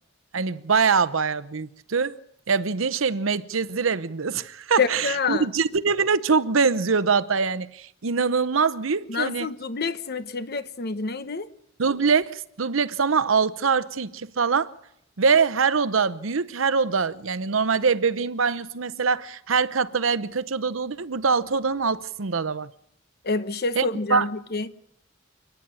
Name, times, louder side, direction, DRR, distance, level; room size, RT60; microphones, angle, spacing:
voice 1, 0.3-2.2 2.5-9.5 11.8-14.7 15.2-22.7 23.8-24.3, right 5 dB, 85° right, 0.8 m, -23 dB
voice 2, 4.8-5.5 9.1-11.5 23.2-24.7, left 4 dB, 55° left, 1.1 m, -27 dB
29.0 x 10.0 x 9.0 m
head